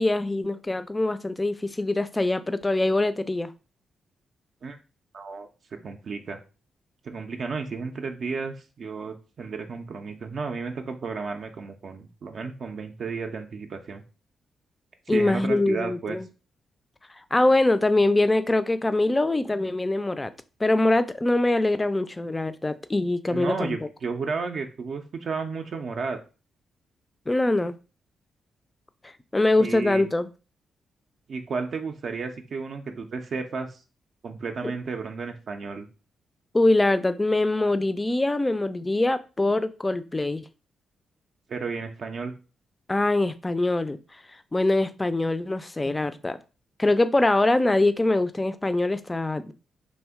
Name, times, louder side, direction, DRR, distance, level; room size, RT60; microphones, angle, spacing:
voice 1, 0.0-3.5 15.1-16.3 17.3-20.3 20.6-23.8 27.3-27.7 29.0-30.3 34.6-34.7 36.5-40.4 42.9-46.4 46.8-49.5, left 2 dB, 25° left, 0.3 m, -23 dB
voice 2, 5.1-5.5 5.8-6.4 7.0-14.0 15.1-16.2 23.3-26.2 29.6-30.1 31.3-33.8 34.2-35.9 41.5-42.3, right 4 dB, 60° right, 0.3 m, -33 dB
2.6 x 2.1 x 3.4 m
hypercardioid pair, 40°, 0 cm